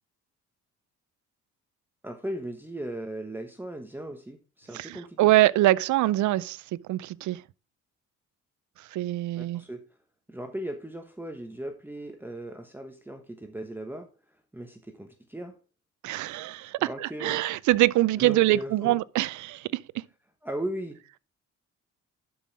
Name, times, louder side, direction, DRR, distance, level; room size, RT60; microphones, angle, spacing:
voice 1, 2.0-5.3 9.3-9.8 10.3-14.1 14.5-15.6 16.8-17.4 18.2-19.0 20.4-21.2, right 1 dB, 5° right, 1.1 m, -37 dB
voice 2, 4.7-6.6 6.9-7.4 8.9-9.6 16.0-19.8, right 16 dB, 75° right, 0.5 m, -24 dB
11.5 x 5.5 x 3.4 m
cardioid pair, 90°, 30 cm